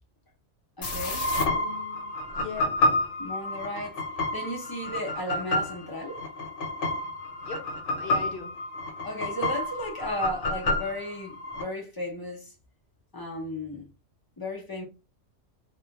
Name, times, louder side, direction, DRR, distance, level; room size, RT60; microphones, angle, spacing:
sound 1, 0.8-11.6, left 2 dB, 70° left, 1.0 m, -30 dB
voice 1, 0.8-1.3 3.2-4.0 4.3-6.2 9.0-12.5 13.1-13.9 14.4-14.8, left 1 dB, 30° left, 0.4 m, -34 dB
voice 2, 1.5-2.8 7.4-7.7 8.0-8.5, left 4 dB, 55° left, 0.7 m, -39 dB
2.3 x 2.1 x 2.8 m
omnidirectional pair, 1.3 m